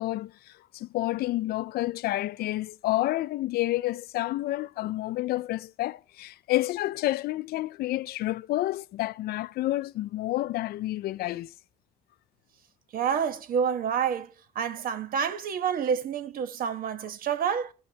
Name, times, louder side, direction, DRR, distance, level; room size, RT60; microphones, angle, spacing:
voice 1, 0.0-11.5, left 16 dB, 70° left, 0.5 m, -29 dB
voice 2, 12.9-14.3 14.5-17.7, right 7 dB, 60° right, 1.2 m, -28 dB
16.0 x 6.2 x 2.8 m
cardioid pair, 110°, 17 cm